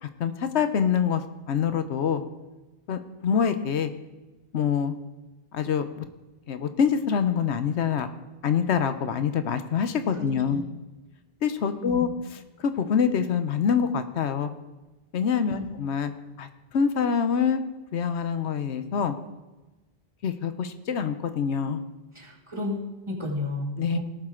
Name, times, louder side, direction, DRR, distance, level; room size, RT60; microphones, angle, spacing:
voice 1, 0.0-1.2 1.5-2.2 2.9-3.9 4.5-5.0 5.5-6.0 6.5-8.1 8.4-10.6 11.4-12.1 12.6-14.5 15.1-16.1 16.4-16.5 16.7-17.6 17.9-19.1 20.2-21.8 23.8-24.0, left 7 dB, 85° left, 10 dB, 1.1 m, -25 dB
voice 2, 10.1-10.6 11.8-12.0 15.5-15.7 22.2-24.0, left 2 dB, 25° right, -3 dB, 2.2 m, -33 dB
18.0 x 7.5 x 3.8 m, 1.1 s
omnidirectional pair, 1.1 m